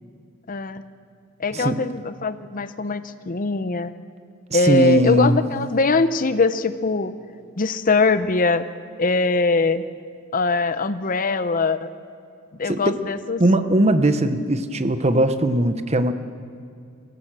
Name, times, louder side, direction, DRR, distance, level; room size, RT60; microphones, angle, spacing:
voice 1, 0.5-0.8 1.4-3.9 4.5-7.1 7.6-8.7 9.0-9.8 10.3-11.9 12.6-13.4, left 3 dB, 40° left, 12 dB, 0.7 m, -21 dB
voice 2, 4.5-5.4 12.7-13.0 13.4-16.1, right 1 dB, 30° right, 10 dB, 0.9 m, -19 dB
24.5 x 16.0 x 7.5 m, 2.4 s
head